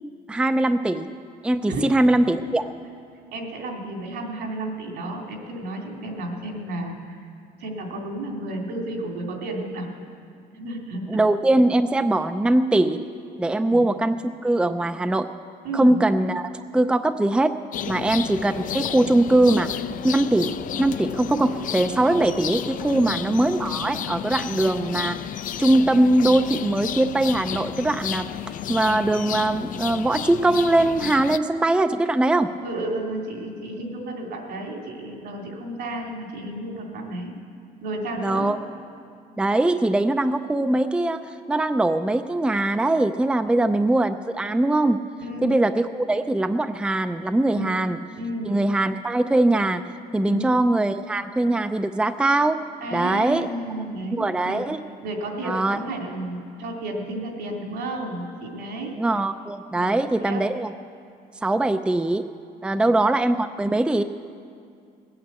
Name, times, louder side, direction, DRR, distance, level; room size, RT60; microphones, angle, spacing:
voice 1, 0.3-1.1 1.4-2.7 11.1-13.0 13.4-15.3 15.7-17.6 17.9-19.7 20.0-25.2 25.6-28.3 28.7-32.5 38.2-38.6 39.4-45.0 45.4-48.0 48.5-49.8 50.1-52.6 52.9-53.5 54.1-54.8 55.4-55.8 59.0-60.7 61.4-62.3 62.6-64.0, right 2 dB, 5° right, 9 dB, 0.5 m, -21 dB
voice 2, 3.3-7.2 7.6-9.9 10.5-11.2 13.6-13.8 15.6-16.0 17.9-18.1 22.9-23.1 32.6-37.3 37.8-38.5 43.5-43.7 45.2-45.5 47.5-47.7 48.2-48.5 50.2-50.4 52.8-54.6 55.0-59.0 59.8-60.4 62.7-62.8, right 1 dB, 75° right, 1 dB, 2.9 m, -32 dB
sound 1, 17.7-31.4, left 10 dB, 55° left, 0.5 m, -32 dB
19.0 x 8.8 x 8.2 m, 2.4 s
cardioid pair, 110°, 17 cm